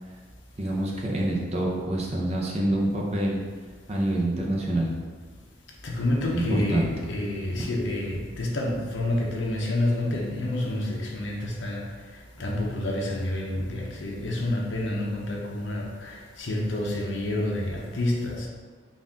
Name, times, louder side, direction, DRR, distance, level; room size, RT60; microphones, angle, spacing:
voice 1, 0.6-3.4 3.9-4.9 6.3-7.1, right 1 dB, 30° right, -2 dB, 0.6 m, -26 dB
voice 2, 5.8-11.8 12.4-18.5, left 1 dB, 65° left, -1 dB, 0.7 m, -28 dB
4.1 x 2.5 x 3.6 m, 1.5 s
head